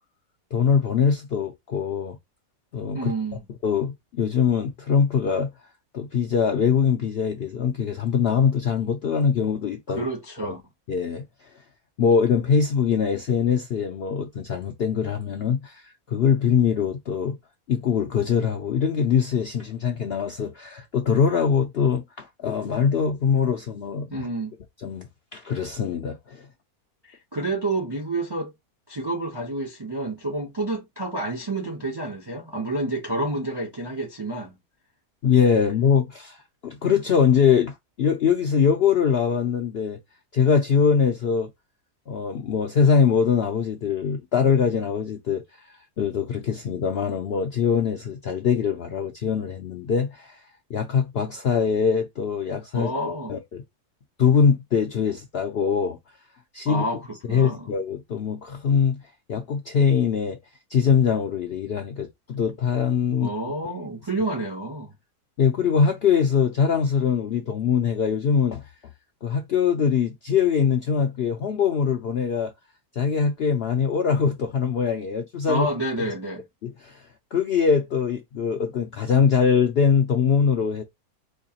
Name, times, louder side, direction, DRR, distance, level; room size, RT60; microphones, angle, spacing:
voice 1, 0.5-2.2 2.7-3.1 3.6-5.5 5.9-10.0 10.4-10.5 10.9-11.3 12.0-17.4 17.7-24.3 24.8-25.1 25.3-26.5 35.2-36.4 36.6-40.0 40.3-41.5 42.1-45.4 46.0-50.4 50.7-52.9 53.3-53.6 54.2-56.0 56.5-56.8 57.3-59.0 59.3-60.4 60.7-63.3 65.4-68.6 69.2-72.5 72.9-75.7 76.0-76.1 76.6-77.1 77.3-80.8, left 6 dB, 70° left, 0.6 m, -22 dB
voice 2, 2.9-3.5 9.9-10.6 24.1-24.5 27.0-28.5 28.9-34.6 52.7-53.4 56.7-57.7 63.2-64.9 75.5-76.4, right 2 dB, 35° right, 0.4 m, -29 dB
4.5 x 2.3 x 2.8 m
omnidirectional pair, 1.6 m